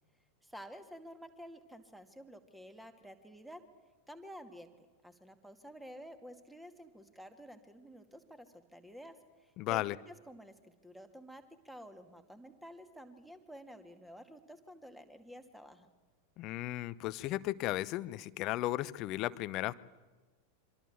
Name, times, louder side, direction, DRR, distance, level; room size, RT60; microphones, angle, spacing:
voice 1, 0.4-3.6 4.1-9.2 9.7-15.9, equal, 5° right, 8 dB, 2.3 m, -51 dB
voice 2, 9.6-10.0 16.4-19.7, left 16 dB, 40° left, 18 dB, 0.8 m, -35 dB
26.5 x 25.0 x 7.4 m, 1.2 s
figure-of-eight pair, 90°, 0 cm